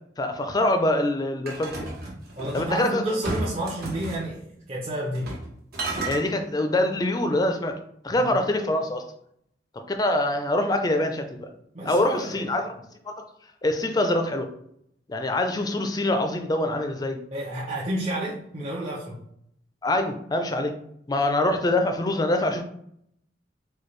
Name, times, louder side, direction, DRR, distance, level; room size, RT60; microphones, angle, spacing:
voice 1, 0.2-1.8 2.5-3.0 6.1-7.7 8.0-9.0 9.9-11.5 11.8-12.8 13.1-13.2 13.6-14.5 15.1-17.2 19.8-20.7 21.1-22.6, left 1 dB, 20° left, 6 dB, 0.4 m, -24 dB
sound 1, 1.5-2.7 3.2-4.2 5.1-5.5 5.7-6.2, right 2 dB, 60° right, 1.2 m, -32 dB
voice 2, 2.4-5.3 8.2-8.3 11.7-12.5 17.3-19.2, right 1 dB, 35° right, -7 dB, 0.7 m, -31 dB
4.2 x 2.2 x 3.1 m, 0.71 s
head